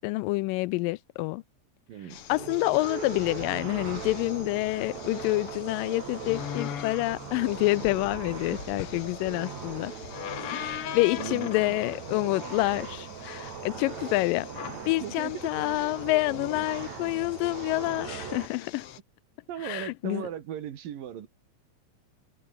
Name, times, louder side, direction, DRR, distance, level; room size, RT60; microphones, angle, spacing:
voice 1, 0.0-1.4 2.3-9.9 10.5-14.5 14.9-18.9 19.6-20.3, left 22 dB, 85° left, 2.2 m, -28 dB
voice 2, 1.9-2.2 8.5-9.0 11.2-11.8 15.0-15.5 19.5-21.3, right 10 dB, 85° right, 3.7 m, -38 dB
sound 1, 2.1-19.0, left 11 dB, 60° left, 1.6 m, -42 dB
sound 2, 2.3-18.5, right 7 dB, 55° right, 4.0 m, -40 dB
omnidirectional pair, 3.9 m